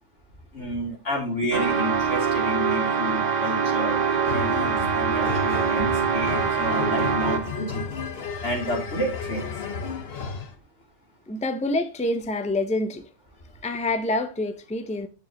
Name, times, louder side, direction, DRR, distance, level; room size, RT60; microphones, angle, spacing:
voice 1, 0.5-7.8 8.4-9.5, equal, 90° left, 3.4 m, -30 dB
sound 1, 1.5-7.6, right 6 dB, 45° right, 0.8 m, -24 dB
sound 2, 4.2-10.5, left 5 dB, 60° left, 1.2 m, -32 dB
voice 2, 11.3-13.1 13.6-15.1, left 2 dB, 10° left, 0.6 m, -27 dB
8.5 x 6.9 x 2.9 m
omnidirectional pair, 1.2 m